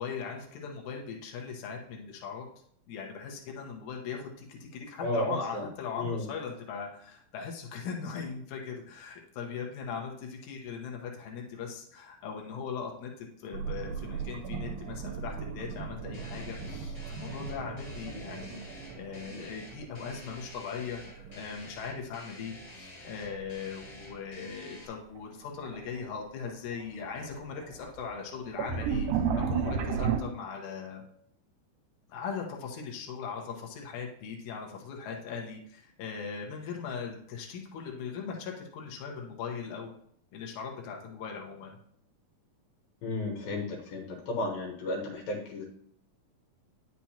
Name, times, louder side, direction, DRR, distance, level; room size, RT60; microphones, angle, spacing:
voice 1, 0.0-2.5 2.9-18.6 18.9-29.1 29.3-31.0 32.1-39.9 40.3-41.8, left 6 dB, 65° left, 0 dB, 2.4 m, -39 dB
voice 2, 5.0-5.6 6.0-6.3 43.0-45.7, left 1 dB, 90° left, 0 dB, 3.0 m, -33 dB
sound 1, 13.5-20.4 20.6-21.5 23.2-23.5 24.1-24.2 25.2-25.3 25.6-26.1 26.5-30.2, right 6 dB, 85° right, 2.4 m, -35 dB
sound 2, 16.1-24.8, left 1 dB, 40° left, 0.9 m, -49 dB
10.0 x 6.1 x 2.9 m, 0.65 s
omnidirectional pair, 4.0 m